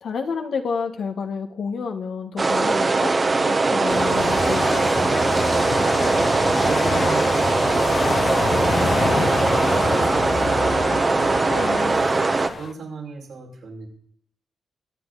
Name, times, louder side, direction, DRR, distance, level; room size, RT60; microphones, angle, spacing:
voice 1, 0.0-3.1 3.5-4.9 11.5-12.0, left 5 dB, 75° left, 5 dB, 1.4 m, -29 dB
sound 1, 2.4-12.5, right 3 dB, 40° right, 1.2 m, -20 dB
sound 2, 3.9-12.7, left 5 dB, 55° left, 0.5 m, -27 dB
voice 2, 5.7-6.1 6.5-8.5 8.7-10.4 11.0-13.9, right 3 dB, 85° right, -3 dB, 5.0 m, -37 dB
24.0 x 8.2 x 4.0 m, 0.68 s
cardioid pair, 60°, 0 cm